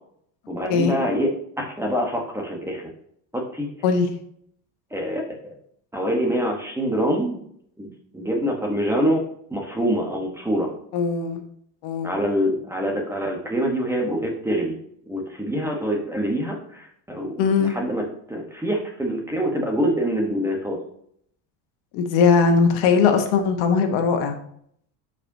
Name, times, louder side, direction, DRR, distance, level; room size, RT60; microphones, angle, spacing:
voice 1, 0.5-1.3 1.6-2.9 3.3-3.7 4.9-5.6 5.9-7.4 7.8-7.9 8.1-9.2 9.5-10.7 12.0-14.8 15.1-20.8, equal, 5° right, 1 dB, 1.0 m, -25 dB
voice 2, 10.9-11.4 11.8-12.1 17.4-17.7 21.9-24.4, left 5 dB, 75° left, 6 dB, 1.4 m, -19 dB
12.0 x 5.0 x 2.7 m, 0.68 s
cardioid pair, 155°, 49 cm